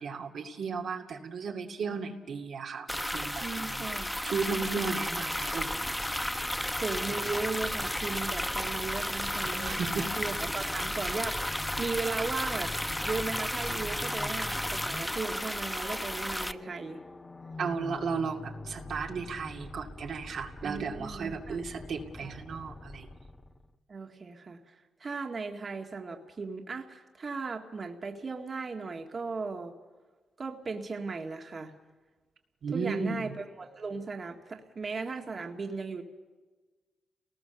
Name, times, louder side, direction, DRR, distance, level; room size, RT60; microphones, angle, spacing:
voice 1, 0.0-5.8 9.7-10.1 17.6-23.1 32.6-33.3, right 5 dB, 75° right, 2 dB, 2.3 m, -35 dB
sound 1, 2.9-16.5, left 1 dB, 5° left, 0.8 m, -33 dB
voice 2, 3.4-4.1 6.8-12.7 13.0-17.0 20.6-21.6 22.2-22.3 23.9-29.7 30.4-31.7 32.7-36.0, right 4 dB, 50° right, 3 dB, 2.0 m, -37 dB
sound 2, 5.7-23.7, left 2 dB, 35° left, 1.6 m, -45 dB
29.5 x 19.0 x 7.0 m, 1.3 s
supercardioid pair, 50°, 0 cm